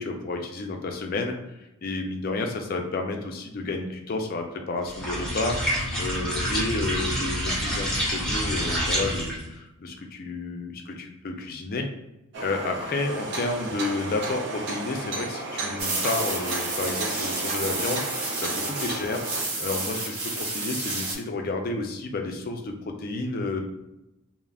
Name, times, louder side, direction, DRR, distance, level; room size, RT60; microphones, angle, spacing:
voice 1, 0.0-5.6 6.0-11.9 12.4-18.1 18.4-19.2 19.6-23.6, left 3 dB, 40° left, 3 dB, 0.4 m, -31 dB
sound 1, 4.9-9.5, equal, 5° left, 0.6 m, -27 dB
sound 2, 12.3-19.4, right 2 dB, 50° right, 0.4 m, -33 dB
sound 3, 15.8-21.2, right 2 dB, 75° right, 0.9 m, -30 dB
2.3 x 2.0 x 3.4 m, 0.93 s
head